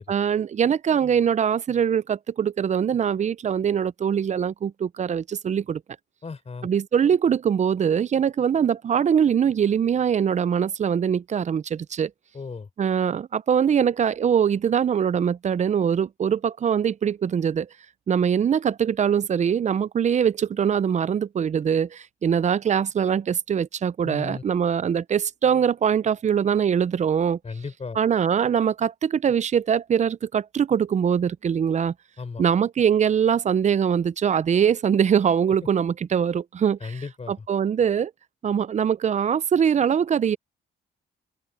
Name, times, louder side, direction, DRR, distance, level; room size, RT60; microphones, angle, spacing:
voice 1, 0.1-5.8 6.6-12.1 12.8-17.7 18.1-27.4 28.0-31.9 32.4-37.0 37.3-38.1 38.4-40.4, right 8 dB, 35° right, 0.5 m, -22 dB
voice 2, 6.2-6.7 12.3-12.7 24.0-24.4 27.4-28.0 32.2-32.4 36.8-37.5, left 4 dB, 35° left, 4.0 m, -35 dB
cardioid pair, 90°, 20 cm